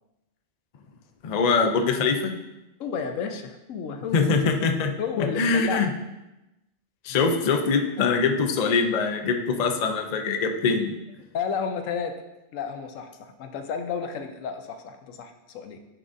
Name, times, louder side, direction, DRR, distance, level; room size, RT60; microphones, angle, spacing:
voice 1, 1.2-2.4 4.1-5.9 7.0-11.0, left 4 dB, 50° left, 5 dB, 0.5 m, -23 dB
voice 2, 2.8-4.4 5.0-5.8 8.0-8.1 11.3-12.2 12.5-15.8, left 6 dB, 85° left, 7 dB, 1.0 m, -32 dB
9.9 x 3.7 x 2.6 m, 0.96 s
omnidirectional pair, 1.3 m